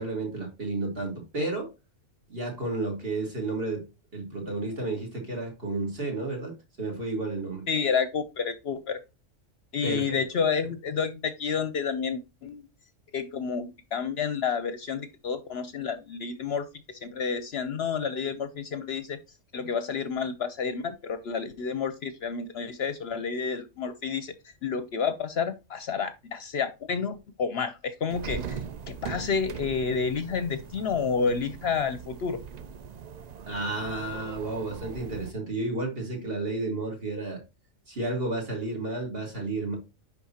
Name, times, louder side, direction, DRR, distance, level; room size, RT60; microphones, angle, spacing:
voice 1, 0.0-1.7 2.3-3.8 4.1-6.5 6.8-7.6 9.8-10.2 33.5-37.4 37.9-39.8, right 2 dB, 50° right, 0 dB, 2.6 m, -32 dB
voice 2, 7.7-9.0 9.7-12.7 13.1-19.2 19.5-24.3 24.6-28.6 28.9-32.5, left 6 dB, 60° left, 12 dB, 0.8 m, -30 dB
sound 1, 28.1-35.3, right 6 dB, 80° right, 0.3 m, -40 dB
10.5 x 4.1 x 2.8 m, 0.26 s
omnidirectional pair, 1.3 m